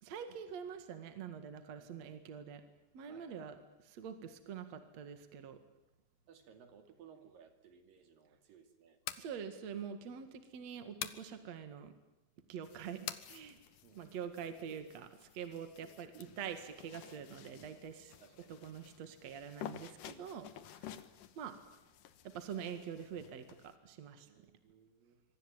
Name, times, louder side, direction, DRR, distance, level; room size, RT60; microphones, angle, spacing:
voice 1, 0.0-2.6 2.9-3.6 3.8-5.6 9.2-11.9 12.5-13.6 13.9-16.1 16.4-18.1 18.5-21.0 21.4-21.5 22.3-24.3, right 7 dB, 55° right, 8 dB, 2.9 m, -45 dB
voice 2, 3.1-3.5 6.3-9.0 13.8-14.2 15.8-16.5 17.5-17.8 18.2-18.6 24.3-25.2, right 7 dB, 70° right, 7 dB, 4.1 m, -61 dB
sound 1, 8.9-9.3 11.0-11.3 13.1-13.3, left 12 dB, 85° left, 3.0 m, -41 dB
sound 2, 12.6-23.8, left 10 dB, 70° left, 2.6 m, -54 dB
26.0 x 24.0 x 9.0 m, 0.94 s
omnidirectional pair, 4.1 m